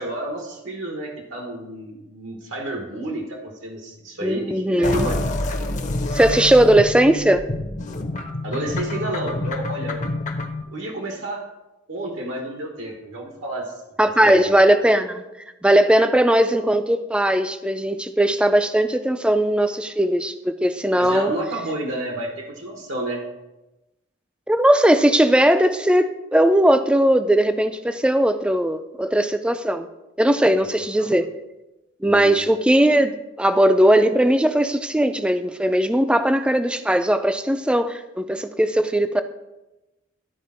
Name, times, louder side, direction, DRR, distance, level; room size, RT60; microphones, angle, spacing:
voice 1, 0.0-5.2 8.4-10.0 10.7-11.4 11.9-13.8 14.2-14.5 20.9-23.3 31.0-31.1 32.0-32.4, right 1 dB, 80° right, 1 dB, 1.3 m, -30 dB
voice 2, 4.2-5.1 6.1-7.4 14.0-15.2 15.6-21.3 24.5-29.9 30.2-31.3 32.0-39.2, right 1 dB, 5° right, 9 dB, 0.3 m, -18 dB
sound 1, 4.8-10.6, left 2 dB, 40° left, 0.7 m, -27 dB
12.0 x 4.2 x 4.3 m, 1.0 s
head